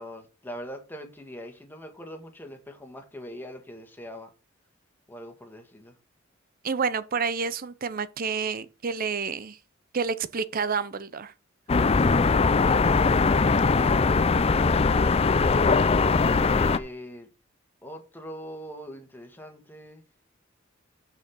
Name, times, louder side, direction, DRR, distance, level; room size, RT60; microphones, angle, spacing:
voice 1, 0.0-4.3 5.1-5.9 16.4-17.3 17.8-20.0, equal, 10° left, 1.6 m, -42 dB
voice 2, 6.6-9.6 9.9-11.3, right 5 dB, 45° right, 0.6 m, -29 dB
sound 1, 11.7-16.8, left 4 dB, 30° left, 0.4 m, -21 dB
6.6 x 6.3 x 5.5 m
head